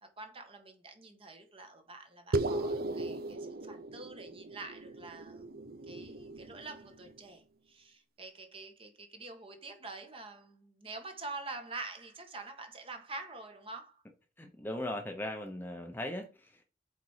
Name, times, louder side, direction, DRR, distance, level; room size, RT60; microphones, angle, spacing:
voice 1, 0.0-5.5 5.9-14.0, right 3 dB, 30° right, 1.4 m, -46 dB
sound 1, 2.3-7.1, right 2 dB, 50° right, 0.5 m, -37 dB
voice 2, 14.4-16.6, left 1 dB, 10° left, 0.7 m, -39 dB
7.9 x 4.3 x 4.9 m
head